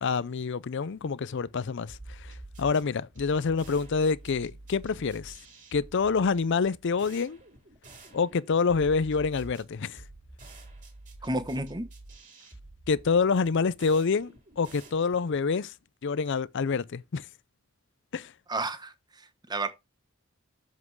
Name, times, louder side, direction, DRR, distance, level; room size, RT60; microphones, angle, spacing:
voice 1, 0.0-5.4 5.7-7.4 8.1-10.0 12.9-15.7 16.0-17.3 18.1-18.3, left 5 dB, 55° left, 0.5 m, -27 dB
sound 1, 1.9-15.5, right 2 dB, 35° right, 3.7 m, -48 dB
voice 2, 11.2-11.8 18.5-19.7, right 2 dB, 20° right, 1.0 m, -32 dB
7.5 x 5.9 x 4.7 m
head